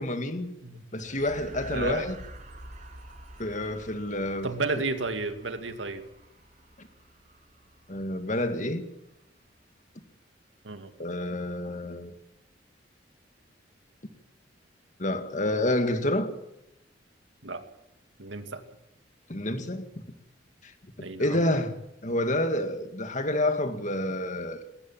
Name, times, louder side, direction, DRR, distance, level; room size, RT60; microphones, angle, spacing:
voice 1, 0.0-0.5 0.9-2.2 3.4-4.5 7.9-8.8 11.0-12.1 15.0-16.3 19.3-19.9 20.6-20.7 21.2-21.7 22.0-24.6, left 1 dB, 40° left, 2.2 m, -28 dB
sound 1, 1.0-9.6, right 1 dB, 40° right, 4.3 m, -48 dB
voice 2, 1.7-2.1 4.4-6.0 10.6-10.9 17.4-17.6 18.2-18.6 21.0-21.4, right 3 dB, 85° right, 2.3 m, -32 dB
20.5 x 18.5 x 7.6 m
head